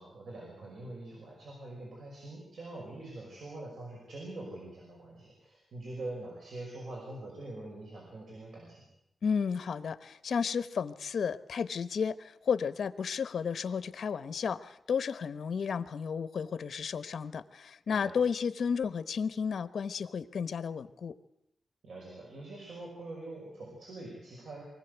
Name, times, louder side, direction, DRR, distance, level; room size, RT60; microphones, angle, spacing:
voice 1, 0.0-8.8 17.9-18.2 21.8-24.6, right 2 dB, 75° right, -1 dB, 5.6 m, -44 dB
voice 2, 9.2-21.1, left 6 dB, 70° left, 13 dB, 0.9 m, -33 dB
23.5 x 16.0 x 8.1 m, 0.82 s
wide cardioid pair, 105°, 0 cm